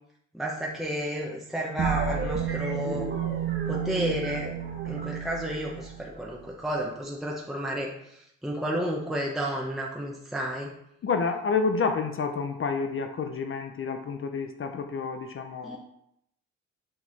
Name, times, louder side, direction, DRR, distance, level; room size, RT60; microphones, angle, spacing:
voice 1, 0.3-3.1 3.7-4.5 4.8-10.7 15.6-15.8, equal, ahead, -3 dB, 1.0 m, -32 dB
sound 1, 1.8-6.5, right 7 dB, 40° right, 1.3 m, -31 dB
voice 2, 11.0-15.8, left 5 dB, 45° left, 6 dB, 0.7 m, -29 dB
7.6 x 3.9 x 4.1 m, 0.76 s
cardioid pair, 90°, 30 cm